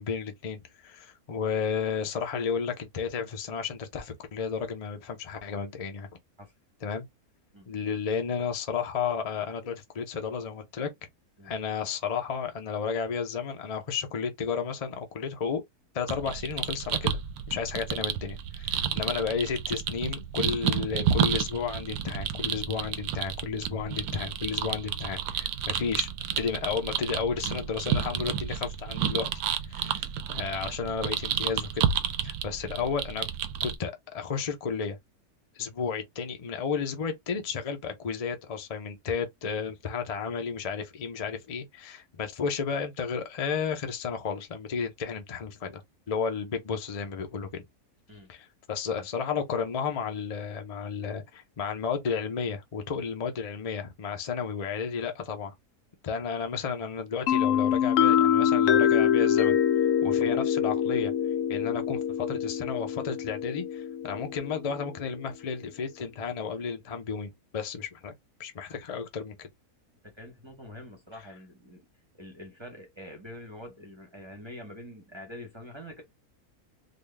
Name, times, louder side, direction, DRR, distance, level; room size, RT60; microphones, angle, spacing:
voice 1, 0.0-6.1 6.8-7.1 7.7-10.9 11.4-15.6 15.9-17.2 17.5-26.1 26.4-29.3 29.7-31.8 32.2-33.3 33.6-35.0 35.5-45.8 46.1-47.6 48.3-55.5 56.0-59.6 60.0-61.1 61.5-68.1 68.4-69.5, left 6 dB, 40° left, 0.5 m, -32 dB
sound 1, 16.1-33.7, right 9 dB, 80° right, 1.1 m, -31 dB
sound 2, 57.3-64.9, left 9 dB, 70° left, 0.8 m, -25 dB
voice 2, 70.0-71.9 72.2-76.0, left 1 dB, 20° right, 0.9 m, -45 dB
3.9 x 2.3 x 3.3 m
omnidirectional pair, 1.6 m